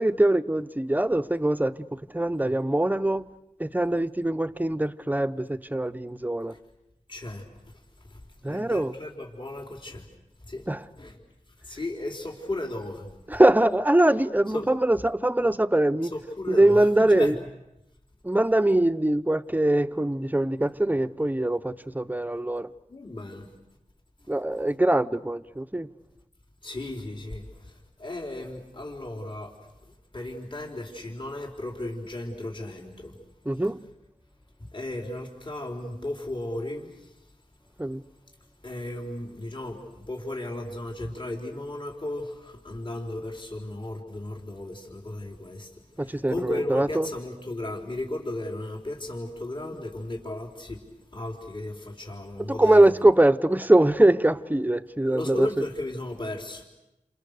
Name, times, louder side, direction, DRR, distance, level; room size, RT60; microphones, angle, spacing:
voice 1, 0.0-3.3 3.6-6.5 8.4-8.9 10.7-10.8 13.3-16.1 16.5-17.4 18.2-22.7 24.3-25.9 33.5-33.8 37.8-38.0 46.0-47.1 52.6-55.5, right 1 dB, 15° right, 0.9 m, -22 dB
voice 2, 7.1-7.7 8.0-10.1 10.4-10.7 11.0-11.2 11.6-13.4 14.5-14.7 15.4-15.5 16.1-17.4 22.9-23.5 26.6-29.6 29.8-33.2 33.5-33.6 34.7-37.2 38.6-50.8 51.1-52.8 55.1-56.6, left 1 dB, 40° left, 4.1 m, -35 dB
29.5 x 28.0 x 6.7 m
wide cardioid pair, 85°, 13 cm